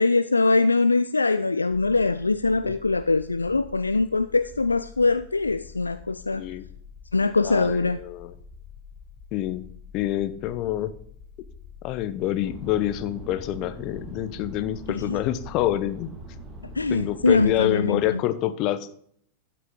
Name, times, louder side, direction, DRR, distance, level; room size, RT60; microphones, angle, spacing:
voice 1, 0.0-6.4 7.1-8.0 15.1-15.2 16.8-18.2, left 3 dB, 80° left, 13 dB, 0.3 m, -22 dB
sound 1, 1.7-17.5, left 6 dB, ahead, 3.5 m, -47 dB
voice 2, 6.3-6.6 7.4-8.3 9.3-9.6 9.9-10.9 11.8-16.1 16.9-18.9, left 13 dB, 40° left, 14 dB, 0.8 m, -27 dB
sound 2, 12.4-18.1, right 3 dB, 20° right, 2.1 m, -43 dB
12.5 x 8.5 x 3.8 m, 0.63 s
figure-of-eight pair, 90°, 0 cm